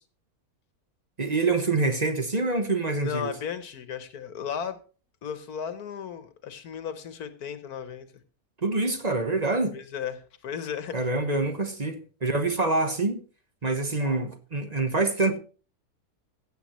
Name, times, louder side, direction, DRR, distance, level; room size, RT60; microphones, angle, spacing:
voice 1, 1.2-3.3 8.6-9.8 10.9-13.2 13.6-15.4, right 3 dB, 30° right, 1.0 m, -26 dB
voice 2, 3.0-4.8 5.2-8.1 9.7-11.1, left 8 dB, 80° left, 1.5 m, -35 dB
15.5 x 8.1 x 3.0 m
omnidirectional pair, 1.6 m